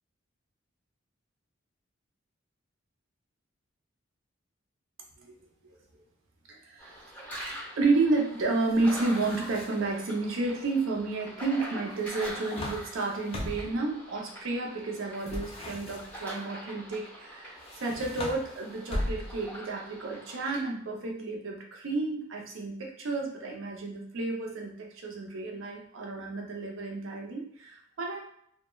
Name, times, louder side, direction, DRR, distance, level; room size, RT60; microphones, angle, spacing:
voice 1, 6.5-7.0 7.8-28.2, right 3 dB, 80° right, 0 dB, 0.5 m, -31 dB
sound 1, 6.8-20.6, equal, 10° left, 0.8 m, -44 dB
sound 2, 8.7-10.0 12.0-13.8 15.2-16.4 17.6-19.5, left 1 dB, 30° left, 0.4 m, -39 dB
2.2 x 2.1 x 3.0 m, 0.67 s
head